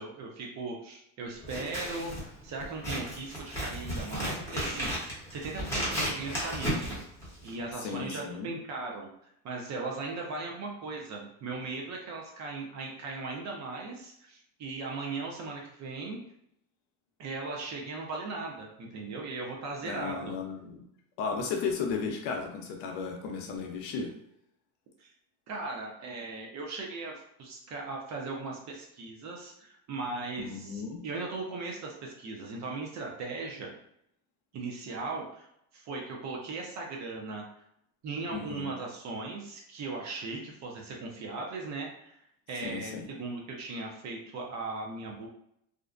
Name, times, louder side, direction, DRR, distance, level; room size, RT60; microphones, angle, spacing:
voice 1, 0.0-7.0 7.4-16.2 17.2-20.4 25.0-25.1 25.5-27.1 27.4-33.7 34.5-35.5 35.7-37.4 38.0-42.1 42.5-45.3, right 3 dB, 35° right, 0 dB, 0.5 m, -38 dB
Scissors, 1.4-7.7, equal, 5° left, 0.9 m, -34 dB
voice 2, 7.8-8.5 19.8-20.8 21.2-24.1 30.4-31.0 38.3-38.7 42.6-43.1, left 5 dB, 60° left, 3 dB, 0.7 m, -34 dB
2.4 x 2.1 x 2.4 m, 0.74 s
supercardioid pair, 120°, 48 cm